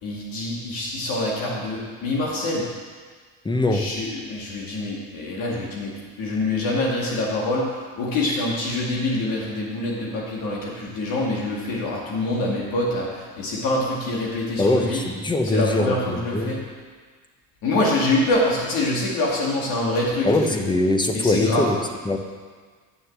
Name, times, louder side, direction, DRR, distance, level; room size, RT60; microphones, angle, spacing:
voice 1, 0.0-2.6 3.7-5.9 6.2-15.0 15.4-16.7 17.6-20.6 21.1-21.7, left 2 dB, 70° left, -4 dB, 2.4 m, -25 dB
voice 2, 3.4-3.9 14.6-16.6 20.2-21.8 22.0-22.2, left 2 dB, 10° left, 5 dB, 0.9 m, -22 dB
9.4 x 6.6 x 7.4 m, 1.5 s
cardioid pair, 115°, 37 cm